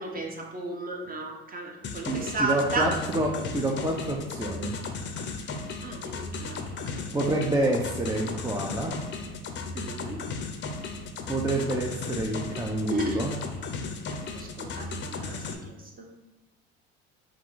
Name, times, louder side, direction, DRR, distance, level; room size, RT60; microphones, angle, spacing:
voice 1, 0.0-3.0 5.8-7.1 9.7-10.3 12.9-13.2 13.8-16.1, right 2 dB, 30° right, 1 dB, 1.0 m, -34 dB
sound 1, 1.8-15.5, left 3 dB, 35° left, 0.6 m, -36 dB
voice 2, 2.0-4.8 7.1-8.9 11.3-13.3, right 1 dB, 10° right, -1 dB, 0.5 m, -28 dB
3.6 x 2.4 x 4.6 m, 1.1 s
hypercardioid pair, 80°, 32 cm